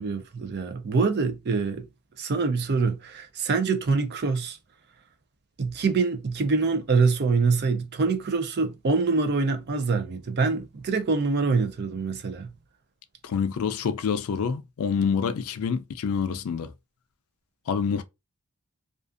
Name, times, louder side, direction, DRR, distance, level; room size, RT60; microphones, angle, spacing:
voice 1, 0.0-1.8 2.2-4.6 5.6-12.5, right 4 dB, 45° right, 0.5 m, -25 dB
voice 2, 13.2-16.7 17.7-18.0, left 6 dB, 75° left, 0.4 m, -27 dB
2.4 x 2.4 x 2.4 m
head